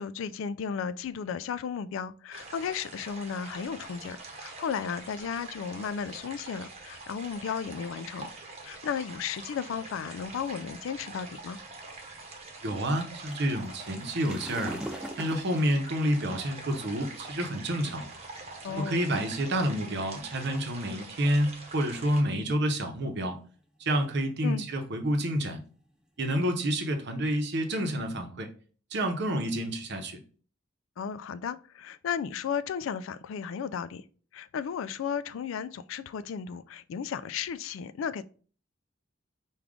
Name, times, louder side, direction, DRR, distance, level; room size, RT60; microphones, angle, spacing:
voice 1, 0.0-8.3 8.6-11.6 18.6-19.0 24.4-24.7 31.0-34.0 34.3-38.2, left 7 dB, 75° left, 0.3 m, -34 dB
sound 1, 2.3-22.2, right 3 dB, 35° right, 0.9 m, -44 dB
voice 2, 12.6-14.8 15.2-18.1 18.7-23.4 23.8-25.6 26.2-28.5 28.9-30.2, equal, 60° right, 0.8 m, -29 dB
sound 2, 13.2-16.8 17.5-17.7 18.4-18.5 18.8-19.0 19.6-20.1 21.0-22.1 22.5-23.0 23.5-23.8 24.2-26.9, equal, 5° right, 0.3 m, -43 dB
4.8 x 2.3 x 3.6 m
head